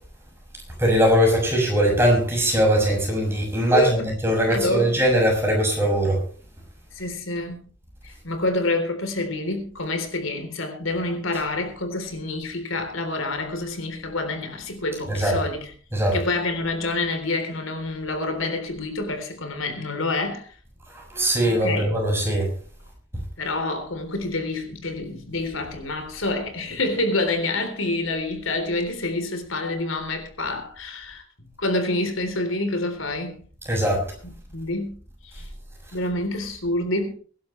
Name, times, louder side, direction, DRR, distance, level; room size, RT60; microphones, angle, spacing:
voice 1, 0.8-6.2 15.1-15.3 15.9-16.2 20.9-22.5 33.7-34.0, equal, 10° right, 6.4 m, -21 dB
voice 2, 4.4-4.9 6.9-7.7 8.0-15.7 16.1-20.5 21.5-21.9 23.4-33.4 34.5-35.0 35.2-35.5 35.9-37.2, left 2 dB, 80° left, 3.7 m, -27 dB
23.5 x 11.5 x 3.3 m
head